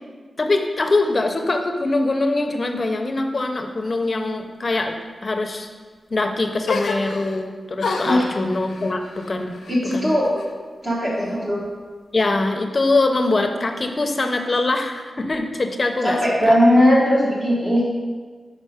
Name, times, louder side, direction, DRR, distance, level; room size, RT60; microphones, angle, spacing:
voice 1, 0.4-5.0 5.2-5.7 6.1-9.6 9.9-10.1 12.1-16.2 16.5-16.6, left 2 dB, 35° left, 5 dB, 0.6 m, -23 dB
sound 1, 6.6-7.5 7.8-10.5 10.8-11.7, left 3 dB, 85° left, 0.5 m, -30 dB
voice 2, 9.7-10.3 10.8-11.6 16.0-17.9, equal, 30° right, -6 dB, 1.0 m, -18 dB
5.5 x 4.9 x 4.9 m, 1.5 s
wide cardioid pair, 140°, 0 cm